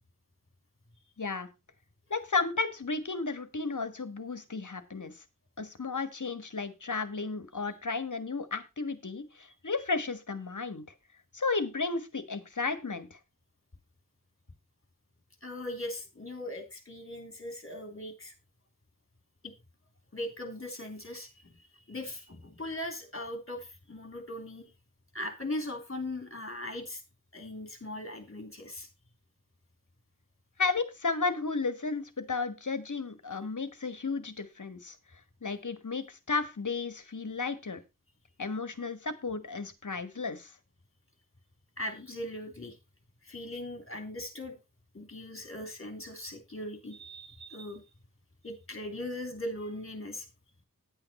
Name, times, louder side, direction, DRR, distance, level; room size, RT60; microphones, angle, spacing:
voice 1, 1.2-1.5 2.1-5.1 5.6-10.8 11.3-13.2 30.6-34.9 35.4-37.8 38.4-40.5, left 4 dB, 65° left, 11 dB, 1.6 m, -33 dB
voice 2, 15.4-18.3 19.4-19.5 20.1-24.7 25.1-27.0 27.3-28.9 41.8-42.8 43.2-44.6 44.9-47.8 48.4-50.3, left 1 dB, 40° left, 6 dB, 3.2 m, -39 dB
10.0 x 8.9 x 4.3 m, 0.25 s
wide cardioid pair, 65°, 33 cm